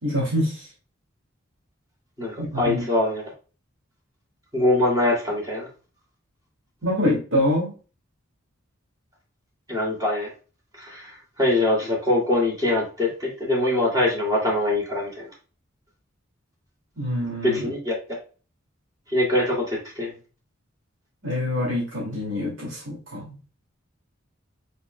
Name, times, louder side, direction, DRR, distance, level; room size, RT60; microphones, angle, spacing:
voice 1, 0.0-0.7 2.4-2.8 6.8-7.7 17.0-17.7 21.2-23.4, left 1 dB, 75° right, -4 dB, 2.3 m, -25 dB
voice 2, 2.2-3.2 4.5-5.7 9.7-10.3 10.8-15.3 17.4-18.0 19.1-20.1, left 1 dB, 20° right, -3 dB, 2.4 m, -23 dB
5.1 x 4.7 x 2.2 m, 0.35 s
head